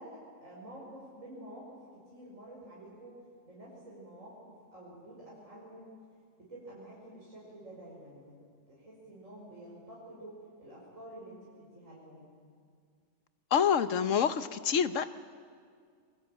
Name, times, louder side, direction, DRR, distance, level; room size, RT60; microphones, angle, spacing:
voice 1, 0.0-3.1 3.4-5.9 6.4-8.4 8.7-12.3, right 1 dB, 90° right, -6 dB, 6.1 m, -49 dB
voice 2, 13.5-15.1, left 7 dB, 75° left, 12 dB, 1.3 m, -27 dB
27.5 x 22.0 x 9.0 m, 2.1 s
omnidirectional pair, 1.3 m